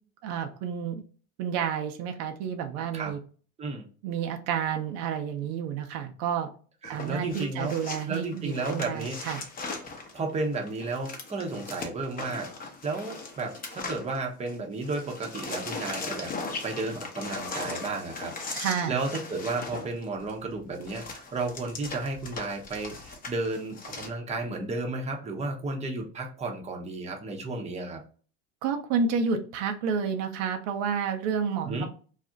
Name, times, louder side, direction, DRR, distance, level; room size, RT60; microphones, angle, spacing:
voice 1, 0.2-1.0 1.4-3.2 4.0-6.5 6.9-9.4 18.6-19.0 28.6-31.9, right 6 dB, 75° right, 5 dB, 0.6 m, -30 dB
sound 1, 6.8-14.6 14.8-24.1, left 3 dB, 25° left, 0.7 m, -39 dB
voice 2, 6.8-7.7 8.0-9.2 10.1-12.5 12.8-16.3 16.6-28.0 31.6-31.9, right 3 dB, 20° right, 2 dB, 0.6 m, -33 dB
2.4 x 2.0 x 3.8 m, 0.40 s
supercardioid pair, 100°, 35 cm